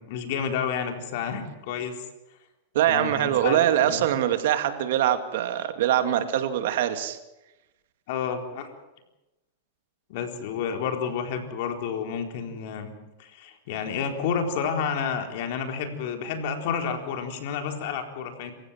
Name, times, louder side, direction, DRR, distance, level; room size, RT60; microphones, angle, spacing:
voice 1, 0.0-1.9 2.9-4.0 8.1-8.7 10.1-12.9 13.2-18.5, left 6 dB, 60° left, 5 dB, 4.1 m, -30 dB
voice 2, 2.7-7.2, right 11 dB, 70° right, 8 dB, 2.4 m, -23 dB
27.5 x 15.5 x 7.5 m, 0.99 s
hypercardioid pair, 130°, 0 cm